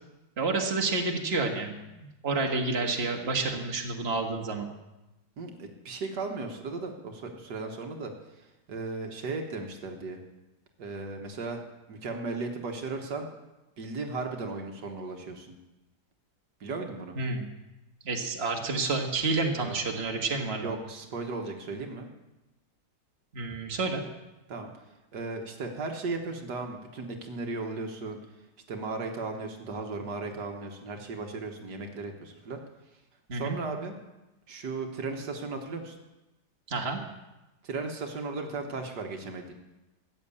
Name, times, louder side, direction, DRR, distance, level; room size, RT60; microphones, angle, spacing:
voice 1, 0.4-4.7 17.2-17.5 18.1-20.7 23.3-24.0 33.3-33.6 36.7-37.0, right 3 dB, 40° right, 2 dB, 1.8 m, -29 dB
voice 2, 5.4-8.1 8.4-10.2 10.8-11.6 11.9-13.3 13.8-15.6 16.6-17.2 19.6-19.8 20.6-22.1 24.5-24.7 25.1-28.2 28.7-32.6 33.3-33.9 34.5-36.0 37.6-39.5, right 3 dB, 75° right, 3 dB, 1.9 m, -36 dB
14.0 x 8.8 x 8.4 m, 1.0 s
omnidirectional pair, 1.8 m